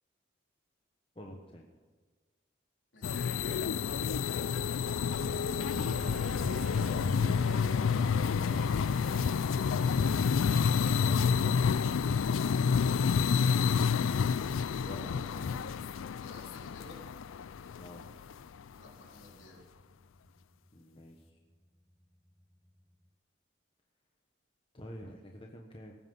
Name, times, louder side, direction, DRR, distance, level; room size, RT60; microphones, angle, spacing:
voice 1, 1.1-1.7 10.6-11.7 14.8-15.6 17.7-18.1 20.7-21.4 24.7-26.0, equal, 25° left, 1 dB, 1.2 m, -48 dB
voice 2, 2.9-4.0 5.0-5.9 6.6-7.4 16.1-17.0 18.7-19.6, left 1 dB, 65° left, -1 dB, 3.9 m, -53 dB
sound 1, 3.0-18.3, left 6 dB, 85° left, 0.4 m, -29 dB
sound 2, 4.8-10.1, right 3 dB, 45° right, 0.5 m, -49 dB
sound 3, 5.6-23.1, equal, ahead, 0.5 m, -49 dB
19.0 x 9.4 x 5.6 m, 1.4 s
head